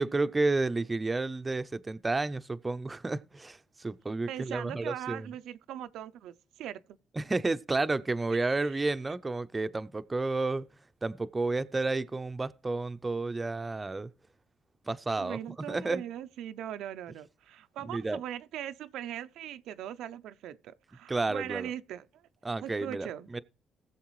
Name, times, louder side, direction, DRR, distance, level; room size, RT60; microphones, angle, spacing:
voice 1, 0.0-5.3 7.2-10.6 11.0-14.1 14.9-15.4 15.7-16.0 17.9-18.2 21.1-21.7 22.4-23.1 23.3-23.4, right 3 dB, 20° right, 0.5 m, -31 dB
voice 2, 4.3-7.0 8.3-8.8 15.2-22.2 22.6-23.3, right 11 dB, 85° right, 0.5 m, -40 dB
19.5 x 7.2 x 3.1 m
cardioid pair, 90°, 0 cm